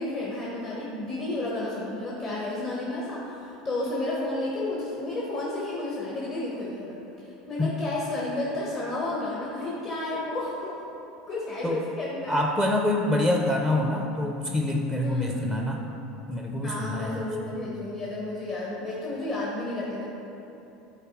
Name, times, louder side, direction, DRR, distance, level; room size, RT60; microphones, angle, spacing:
voice 1, 0.0-6.9 7.5-10.8 11.3-12.3 15.0-15.6 16.6-20.0, left 2 dB, 35° left, -6 dB, 1.4 m, -31 dB
voice 2, 12.3-15.8 16.3-17.3, left 1 dB, 15° left, 1 dB, 0.6 m, -26 dB
8.9 x 4.1 x 4.7 m, 3.0 s
supercardioid pair, 105°, 3 cm